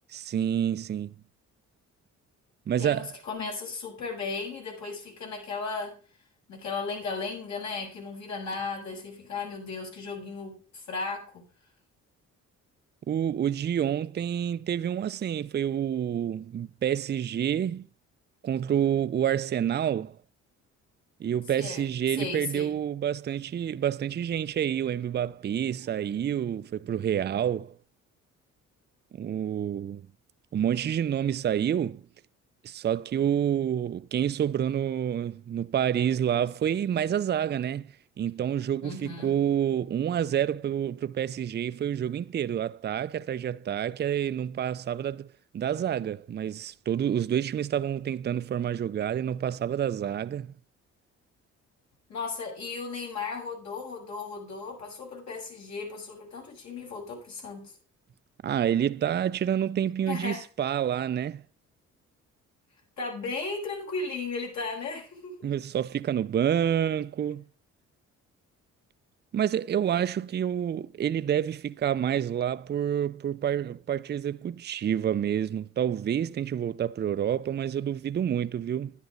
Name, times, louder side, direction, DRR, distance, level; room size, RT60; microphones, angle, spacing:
voice 1, 0.1-1.1 2.7-3.2 13.1-17.9 18.4-20.2 21.2-27.7 29.1-30.0 30.5-32.0 32.6-45.3 45.5-50.5 58.4-61.4 65.4-67.4 69.3-78.9, right 9 dB, 35° right, 0.5 m, -28 dB
voice 2, 2.8-5.9 6.5-11.4 21.6-22.7 38.8-39.3 52.1-57.7 60.1-60.4 63.0-65.5, left 4 dB, 65° left, 6.9 m, -36 dB
10.5 x 10.5 x 3.9 m
cardioid pair, 90°, 30 cm